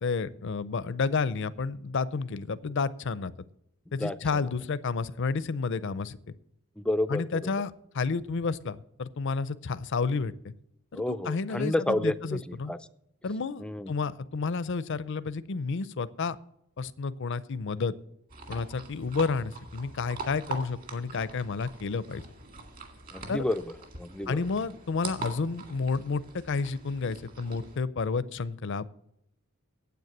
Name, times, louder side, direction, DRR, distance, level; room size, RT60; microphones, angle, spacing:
voice 1, 0.0-3.3 3.9-6.2 7.1-10.5 10.9-12.7 13.2-16.4 16.8-17.9 18.5-22.2 23.3-23.4 24.3-28.9, left 4 dB, 60° left, 16 dB, 0.5 m, -31 dB
voice 2, 3.9-4.5 6.8-7.5 10.9-12.8 13.6-13.9 23.1-24.5, left 1 dB, 5° left, 14 dB, 0.4 m, -31 dB
sound 1, 18.3-27.8, right 3 dB, 45° right, 2.0 m, -43 dB
9.4 x 8.3 x 7.2 m, 0.78 s
head